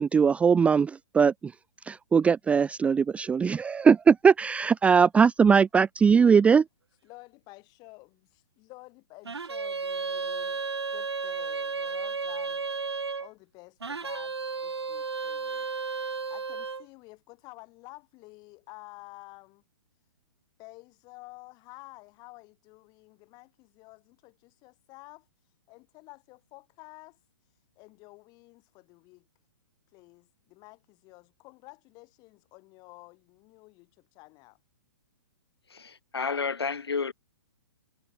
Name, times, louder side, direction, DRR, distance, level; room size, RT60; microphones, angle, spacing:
voice 1, 0.0-1.5 1.9-6.6, right 6 dB, 10° right, 0.5 m, -20 dB
voice 2, 7.0-10.6 10.9-12.7 13.2-14.3 14.6-15.7 16.3-19.6 20.6-25.3 25.7-27.2 27.8-29.3 29.9-34.6, left 24 dB, 30° left, 6.5 m, -51 dB
sound 1, 9.2-13.3 13.8-16.8, right 4 dB, 85° right, 0.6 m, -33 dB
voice 3, 35.7-37.1, left 5 dB, 75° left, 2.7 m, -31 dB
figure-of-eight pair, 120°, 13 cm